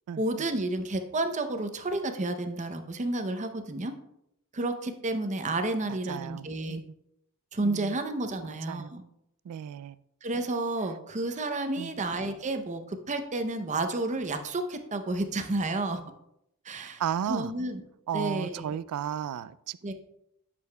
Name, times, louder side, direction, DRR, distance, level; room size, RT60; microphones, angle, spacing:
voice 1, 0.2-3.9 4.5-6.8 7.5-9.0 10.2-16.0 16.6-17.0 17.3-17.8 18.1-18.7 19.8-19.9, right 2 dB, 35° right, 7 dB, 0.6 m, -31 dB
voice 2, 5.9-6.8 7.6-8.0 8.7-8.9 9.5-10.0 11.8-11.9 16.8-17.5 18.1-19.9, right 9 dB, 85° right, 17 dB, 0.3 m, -34 dB
9.6 x 6.8 x 2.2 m, 0.79 s
head